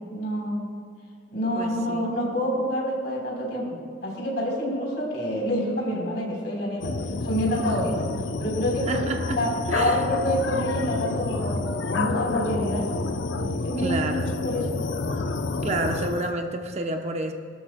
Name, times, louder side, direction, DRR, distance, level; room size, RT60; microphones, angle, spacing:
voice 1, 0.1-0.7 1.3-6.9 7.2-8.1 8.4-9.0 9.4-12.9 13.4-14.7, equal, 65° left, -2 dB, 3.7 m, -27 dB
voice 2, 1.6-2.1 8.9-10.0 13.8-14.4 15.6-17.3, right 2 dB, 35° right, 4 dB, 0.7 m, -29 dB
sound 1, 6.8-16.3, left 3 dB, 85° left, 0.6 m, -29 dB
22.5 x 12.5 x 2.2 m, 2.1 s
head